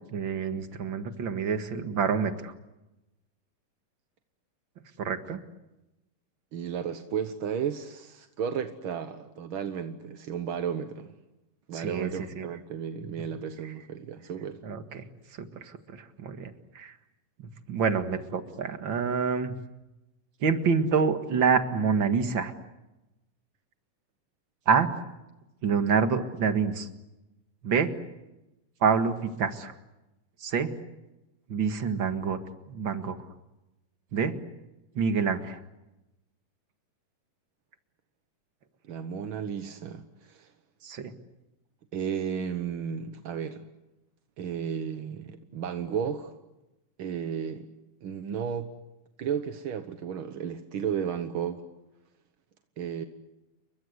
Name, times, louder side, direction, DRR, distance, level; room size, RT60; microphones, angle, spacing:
voice 1, 0.1-2.5 5.0-5.4 11.7-12.5 14.6-15.1 15.4-16.9 17.4-19.5 20.4-22.5 24.7-24.9 25.6-26.9 27.6-27.9 28.8-29.7 30.4-30.7 31.5-32.4 32.7-33.2 34.1-34.4 35.0-35.6 40.8-41.1, right 6 dB, 45° right, 8 dB, 2.1 m, -27 dB
voice 2, 6.5-11.1 11.7-14.6 38.9-40.5 41.9-43.6 44.4-46.3 47.0-47.7 48.0-48.7 49.2-51.6 52.8-53.0, right 7 dB, 60° right, 8 dB, 1.5 m, -33 dB
29.5 x 23.5 x 8.0 m, 0.98 s
omnidirectional pair, 3.8 m